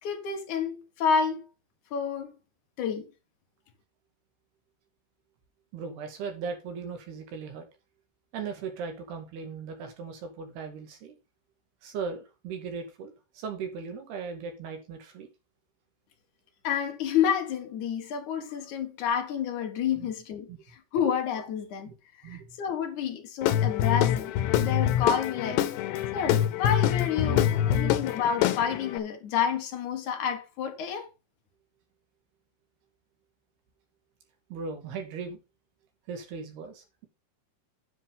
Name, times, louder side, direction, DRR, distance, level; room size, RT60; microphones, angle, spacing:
voice 1, 0.0-1.5 1.9-2.3 2.8-3.1 16.6-20.5 20.9-21.9 22.2-25.6 26.1-31.1, left 7 dB, 60° left, 2.4 m, -29 dB
voice 2, 5.7-7.7 8.3-11.2 11.8-15.3 19.9-20.1 20.5-20.6 21.0-21.2 21.9-22.0 22.2-22.6 27.2-28.1 34.5-35.4 36.1-37.1, right 5 dB, 75° right, 4.2 m, -38 dB
Guitar / Drum, 23.4-29.0, left 11 dB, 90° left, 3.0 m, -25 dB
10.0 x 7.8 x 3.8 m
omnidirectional pair, 4.7 m